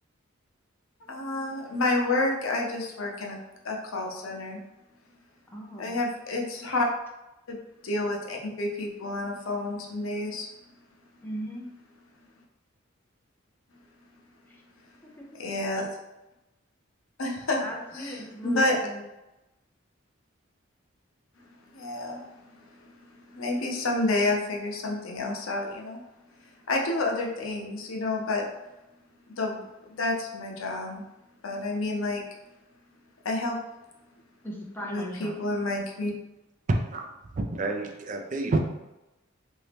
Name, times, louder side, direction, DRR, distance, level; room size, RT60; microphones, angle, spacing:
voice 1, 1.1-3.4 3.6-4.6 5.8-6.9 7.5-7.6 7.8-10.5 15.4-15.9 17.2-17.6 17.9-18.2 18.4-18.8 21.7-22.3 23.3-26.0 26.7-28.4 29.4-31.0 31.4-32.2 33.2-33.6 34.9-36.1, left 2 dB, 90° left, 0 dB, 0.7 m, -29 dB
voice 2, 5.5-6.0 11.2-11.7 14.5-14.6 15.2-15.4 17.6-19.0 25.2-25.3 34.4-35.4, right 1 dB, 10° left, -3 dB, 0.6 m, -38 dB
voice 3, 36.7-37.1 37.3-38.6, right 2 dB, 40° right, 4 dB, 0.4 m, -28 dB
2.9 x 2.7 x 3.3 m, 0.97 s
head